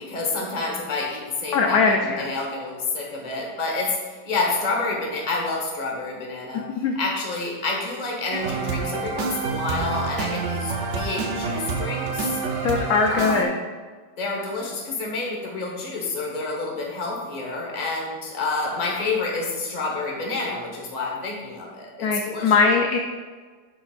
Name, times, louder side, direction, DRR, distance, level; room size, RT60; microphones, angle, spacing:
voice 1, 0.0-12.4 13.1-13.5 14.2-22.6, left 3 dB, 25° left, -1 dB, 1.1 m, -29 dB
voice 2, 1.5-2.3 6.5-6.9 12.6-13.5 22.0-23.0, left 4 dB, 70° left, 2 dB, 0.9 m, -21 dB
sound 1, 8.3-13.4, right 4 dB, 65° right, 0.7 m, -28 dB
11.0 x 5.1 x 2.5 m, 1.5 s
omnidirectional pair, 2.0 m